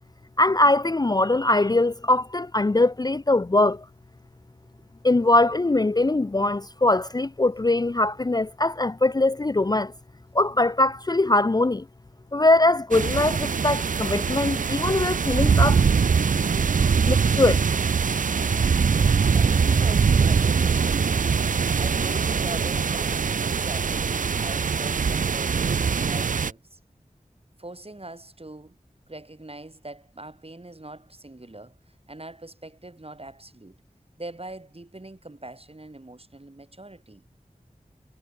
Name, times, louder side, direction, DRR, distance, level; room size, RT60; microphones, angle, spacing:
voice 1, 0.4-3.8 5.0-9.9 10.3-11.9 12.3-15.8 17.1-17.6, left 2 dB, 30° left, 0.5 m, -21 dB
sound 1, 12.9-26.5, right 5 dB, 65° right, 0.4 m, -22 dB
voice 2, 19.3-21.4 21.8-25.6 26.0-26.8 27.6-28.8 29.1-31.7 32.1-33.8 34.2-37.2, right 2 dB, 45° right, 4.6 m, -42 dB
wide cardioid pair, 40°, 14 cm